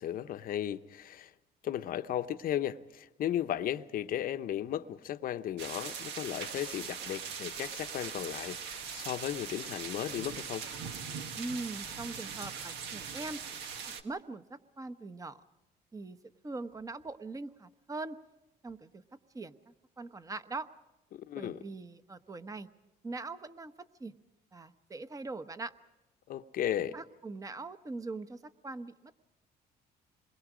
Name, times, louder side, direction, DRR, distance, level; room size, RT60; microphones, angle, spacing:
voice 1, 0.0-1.3 1.6-10.6 21.1-21.6 26.3-27.0, left 11 dB, 60° left, 0.8 m, -35 dB
sound 1, 5.6-14.0, right 6 dB, 85° right, 1.7 m, -41 dB
voice 2, 11.3-13.4 13.9-15.4 15.9-16.2 16.4-18.2 18.6-19.0 19.3-20.7 21.4-22.7 23.0-23.7 24.0-24.1 24.5-25.7 26.9-29.1, right 3 dB, 20° right, 1.0 m, -41 dB
27.5 x 21.5 x 5.0 m
cardioid pair, 110°, 17 cm